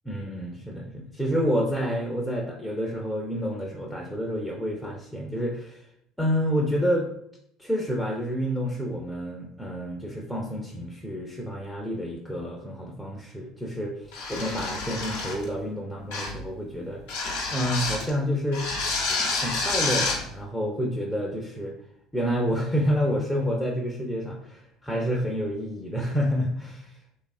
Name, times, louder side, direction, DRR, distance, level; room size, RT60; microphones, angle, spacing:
voice 1, 0.1-5.8 6.2-7.1 7.6-17.0 17.5-18.6 19.4-21.7 22.1-26.9, equal, 5° left, -2 dB, 0.4 m, -29 dB
sound 1, 14.1-15.5 16.1-16.4 17.1-18.1 18.5-20.2, left 3 dB, 80° left, 0.7 m, -28 dB
2.7 x 2.4 x 2.3 m, 0.72 s
hypercardioid pair, 80°, 0 cm